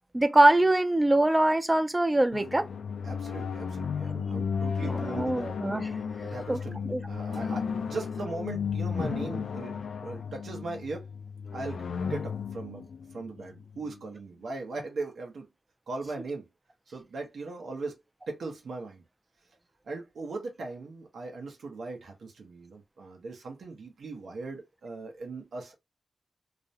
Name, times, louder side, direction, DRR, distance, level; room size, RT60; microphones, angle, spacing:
voice 1, 0.1-2.7 4.8-5.8 6.5-6.6 6.9-7.0, right 1 dB, 15° right, 0.3 m, -23 dB
sound 1, 2.3-14.0, left 6 dB, 80° left, 0.3 m, -34 dB
voice 2, 3.0-5.5 6.2-11.1 11.5-15.5 15.9-16.5 16.9-18.0 18.3-19.0 19.8-25.8, right 3 dB, 75° right, 0.6 m, -39 dB
2.4 x 2.0 x 2.6 m
wide cardioid pair, 150°, 0 cm